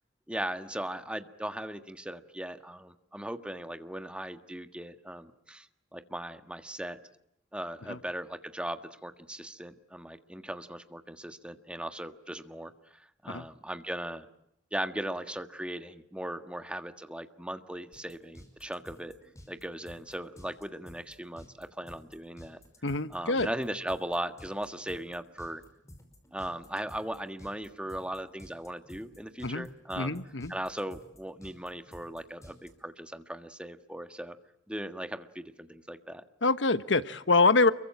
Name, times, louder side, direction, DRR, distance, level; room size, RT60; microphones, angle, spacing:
voice 1, 0.3-5.7 5.9-7.0 7.5-14.3 14.7-19.1 19.5-22.6 23.1-25.6 26.3-30.2 30.5-34.4 34.7-36.2, right 1 dB, 5° right, 8 dB, 1.7 m, -38 dB
sound 1, 17.9-32.7, equal, 15° left, 5.6 m, -52 dB
voice 2, 22.8-23.5 29.4-29.7 30.0-30.5 36.4-37.7, left 3 dB, 80° left, 13 dB, 1.2 m, -25 dB
29.5 x 23.5 x 8.7 m, 0.77 s
head